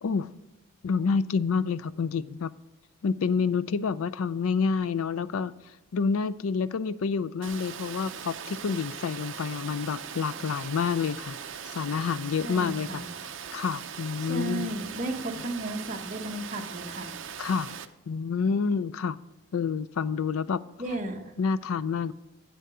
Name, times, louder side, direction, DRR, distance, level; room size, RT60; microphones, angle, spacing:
voice 1, 0.0-0.3 0.8-2.5 3.0-5.5 5.9-11.4 11.7-13.0 13.5-14.7 17.4-17.7 18.1-19.2 19.5-20.6 21.4-22.1, left 5 dB, 85° left, 17 dB, 0.4 m, -28 dB
Water, 7.4-17.9, right 7 dB, 60° right, 0.6 m, -40 dB
voice 2, 12.4-13.1 14.2-17.1 20.8-21.3, right 1 dB, 35° right, 2 dB, 1.0 m, -34 dB
9.3 x 7.7 x 4.8 m, 1.0 s
head